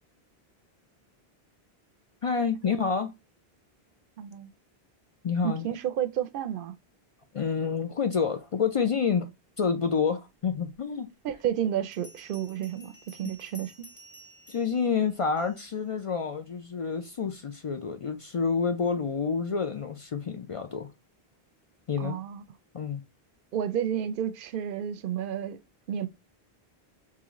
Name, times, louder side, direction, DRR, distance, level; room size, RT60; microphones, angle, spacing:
voice 1, 2.2-3.1 5.2-5.7 7.3-9.3 9.6-11.1 14.5-20.9 21.9-22.2 22.7-23.0, left 6 dB, 55° left, 0.3 m, -28 dB
voice 2, 4.2-4.5 5.4-6.7 11.2-13.7 22.0-22.4 23.5-25.6 25.9-26.1, right 10 dB, 65° right, 0.7 m, -31 dB
Bell, 11.9-15.8, equal, 20° left, 0.9 m, -53 dB
3.7 x 3.0 x 2.9 m
omnidirectional pair, 1.0 m